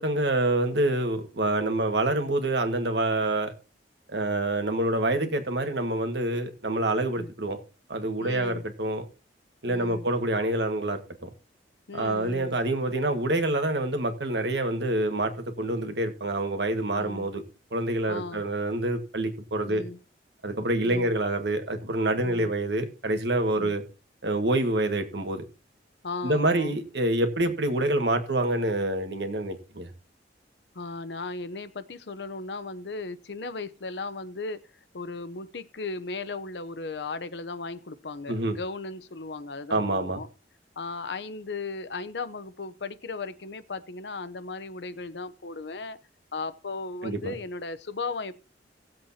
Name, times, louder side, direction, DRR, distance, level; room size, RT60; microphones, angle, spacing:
voice 1, 0.0-3.5 4.1-7.6 7.9-9.0 9.6-11.3 11.9-15.3 15.6-17.4 17.7-19.8 20.4-23.8 24.2-25.4 26.2-29.9 38.3-38.6 39.7-40.2 47.0-47.3, right 1 dB, 70° right, 1.7 m, -27 dB
voice 2, 8.2-8.6 9.7-10.1 11.9-12.6 17.0-17.3 18.1-18.4 19.7-20.0 20.8-21.1 23.6-23.8 26.0-26.8 30.7-34.6 34.9-40.3 40.8-46.0 46.3-48.3, left 3 dB, 75° left, 0.8 m, -36 dB
18.0 x 7.7 x 2.8 m
head